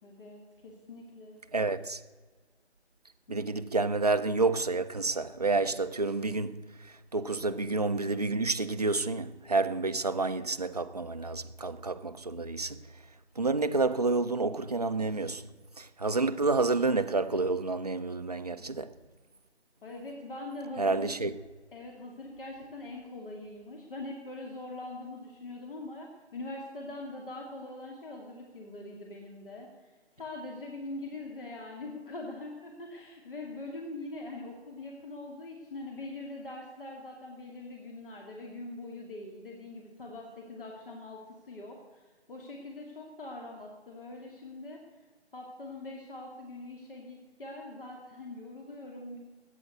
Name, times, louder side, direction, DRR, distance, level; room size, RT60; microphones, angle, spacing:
voice 1, 0.0-1.4 3.3-3.4 19.8-21.1 21.7-44.8 45.3-49.2, left 2 dB, 50° left, 2.4 m, -43 dB
voice 2, 1.5-2.0 3.3-12.8 13.4-15.4 15.8-18.9 20.8-21.3, right 3 dB, 35° right, 0.5 m, -29 dB
14.0 x 9.1 x 8.0 m
figure-of-eight pair, 170°, 34 cm